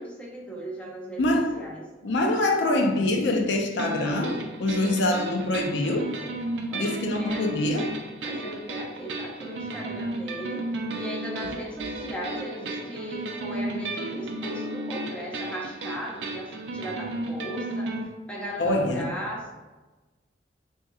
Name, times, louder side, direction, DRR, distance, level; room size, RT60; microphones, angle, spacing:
voice 1, 0.0-1.9 6.7-7.5 8.2-10.7 10.9-17.9 18.3-19.5, equal, 5° left, -4 dB, 0.6 m, -37 dB
voice 2, 1.2-1.5 2.0-6.0 6.7-8.0 18.6-19.1, left 1 dB, 75° left, 3 dB, 0.4 m, -25 dB
sound 1, 3.8-18.0, right 1 dB, 85° right, 0.5 m, -34 dB
3.5 x 2.9 x 2.3 m, 1.2 s
head